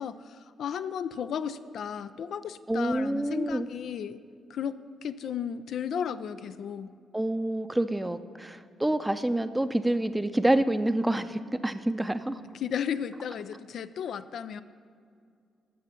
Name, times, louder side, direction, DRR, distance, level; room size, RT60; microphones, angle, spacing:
voice 1, 0.0-4.2 4.5-6.9 12.6-14.6, left 8 dB, 65° left, 12 dB, 0.3 m, -34 dB
voice 2, 2.7-3.7 7.1-12.4, right 1 dB, 15° right, 12 dB, 0.6 m, -27 dB
11.5 x 6.7 x 5.7 m, 2.3 s
hypercardioid pair, 45°, 0 cm